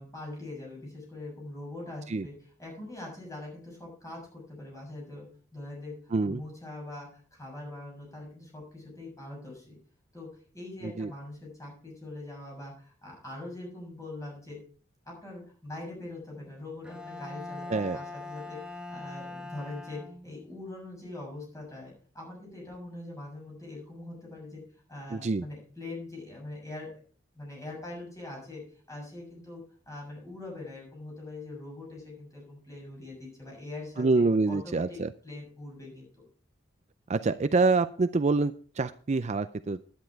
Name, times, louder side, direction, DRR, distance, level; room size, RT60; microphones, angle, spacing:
voice 1, 0.0-5.3 5.5-6.0 6.2-9.8 10.1-10.3 10.5-14.6 15.1-24.6 24.9-26.9 27.3-28.6 28.9-36.2, left 2 dB, 15° left, -2 dB, 7.1 m, -42 dB
voice 2, 6.1-6.4 11.0-11.1 17.7-18.0 25.1-25.4 34.0-35.1 37.1-39.8, right 3 dB, 35° right, 11 dB, 0.4 m, -26 dB
Bowed string instrument, 16.8-20.6, left 2 dB, 5° right, 1.1 m, -42 dB
10.5 x 10.5 x 4.6 m, 0.42 s
head